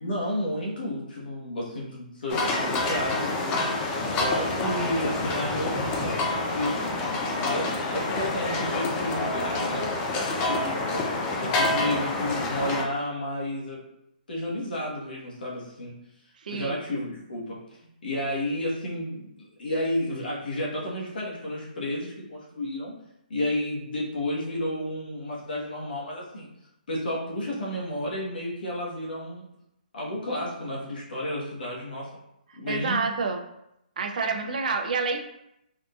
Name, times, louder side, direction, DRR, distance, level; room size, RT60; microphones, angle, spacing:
voice 1, 0.0-3.9 4.1-6.8 7.4-10.8 11.3-13.8 14.3-15.9 16.5-17.6 18.0-22.9 23.3-26.5 26.9-29.5 29.9-32.1 32.6-33.0, left 1 dB, 75° left, -4 dB, 1.2 m, -31 dB
sound 1, 2.3-12.8, left 2 dB, 20° left, 0.4 m, -27 dB
voice 2, 16.4-16.8 32.7-33.4 34.0-35.2, right 4 dB, 60° right, 5 dB, 0.4 m, -28 dB
3.6 x 2.6 x 2.3 m, 0.82 s
hypercardioid pair, 160°, 5 cm